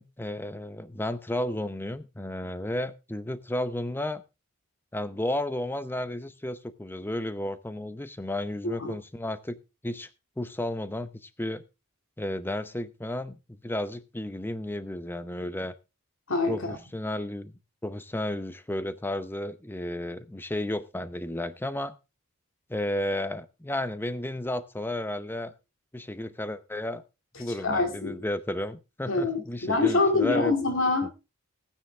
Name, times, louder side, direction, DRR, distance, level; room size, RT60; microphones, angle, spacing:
voice 1, 0.0-4.2 4.9-9.6 9.8-10.1 10.4-11.6 12.2-13.4 13.6-15.7 16.5-22.0 22.7-25.5 25.9-27.0 27.4-30.5, left 1 dB, 10° left, 13 dB, 0.7 m, -33 dB
voice 2, 8.6-8.9 16.3-16.8 27.6-28.2 29.1-31.3, left 3 dB, 65° left, 4 dB, 2.1 m, -25 dB
14.5 x 9.5 x 3.3 m, 0.28 s
head